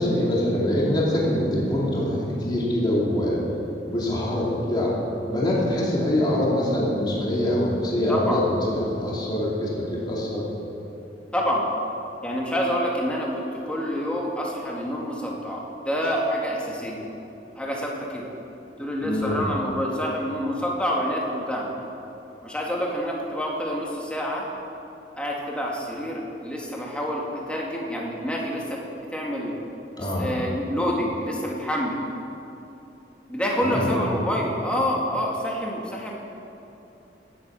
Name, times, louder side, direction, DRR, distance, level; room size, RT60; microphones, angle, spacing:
voice 1, 0.0-3.4 3.9-4.9 5.3-8.4 8.8-10.4 19.0-19.4 30.0-30.3 33.6-34.0, left 1 dB, 25° left, -5 dB, 2.6 m, -24 dB
voice 2, 8.1-8.5 11.3-11.7 12.2-17.1 17.6-18.3 18.8-21.7 22.4-24.4 25.2-28.8 29.1-29.6 30.0-32.0 33.3-36.1, equal, 5° left, -3 dB, 2.2 m, -27 dB
17.0 x 8.4 x 7.0 m, 2.9 s
head